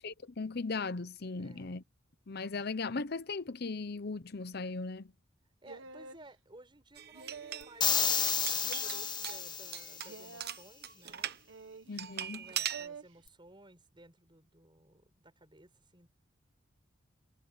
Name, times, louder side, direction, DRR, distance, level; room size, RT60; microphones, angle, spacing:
voice 1, 0.0-1.8 2.3-5.1 11.9-12.4, left 3 dB, 55° left, 0.8 m, -38 dB
voice 2, 1.4-1.9 2.6-2.7 5.6-11.4 12.3-16.1, right 1 dB, 25° right, 6.2 m, -57 dB
sound 1, 5.6-6.2 7.1-7.8 8.6-9.1 10.0-10.6 11.5-12.0 12.7-13.0, right 4 dB, 80° right, 1.7 m, -48 dB
sound 2, 7.0-11.4 12.0-12.9, right 10 dB, 55° right, 1.1 m, -41 dB
sound 3, 7.8-10.1, left 7 dB, 20° left, 1.2 m, -31 dB
head